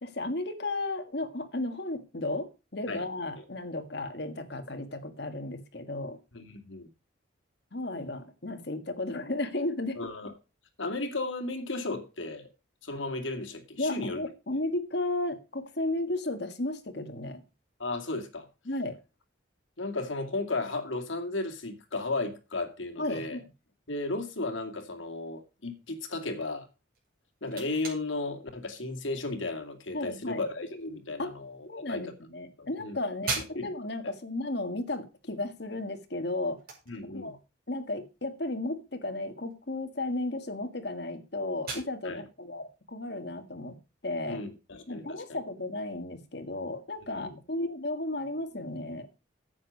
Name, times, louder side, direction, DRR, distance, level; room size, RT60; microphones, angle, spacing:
voice 1, 0.0-6.2 7.7-10.0 13.8-17.4 18.7-19.0 23.0-23.4 29.9-30.4 31.2-31.3 31.7-36.6 37.1-37.4 37.7-43.8 44.0-44.4 44.9-49.1, left 2 dB, 55° left, 1.8 m, -34 dB
voice 2, 6.3-6.9 9.9-10.3 10.8-12.5 12.8-14.2 17.8-18.5 19.8-23.4 23.9-26.7 27.4-32.0 32.6-33.0 33.4-33.8 36.9-37.3 42.0-42.2 44.3-45.4 47.1-47.4, left 2 dB, 80° left, 2.3 m, -35 dB
sound 1, 26.9-44.6, right 4 dB, 50° right, 5.6 m, -45 dB
9.8 x 8.4 x 5.3 m
head